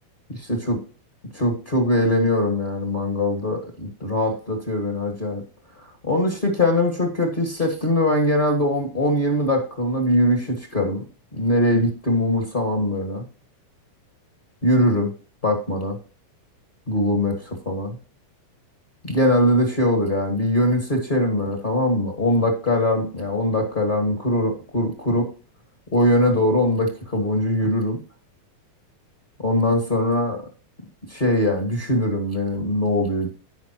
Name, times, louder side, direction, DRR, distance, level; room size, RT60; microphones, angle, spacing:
voice 1, 0.3-0.8 1.3-5.4 6.0-11.0 11.3-13.2 14.6-15.1 15.4-16.0 16.9-18.0 19.0-25.3 25.9-28.0 29.4-30.4 31.1-33.3, left 1 dB, 25° left, 2 dB, 1.1 m, -21 dB
16.5 x 5.5 x 3.0 m, 0.36 s
omnidirectional pair, 4.2 m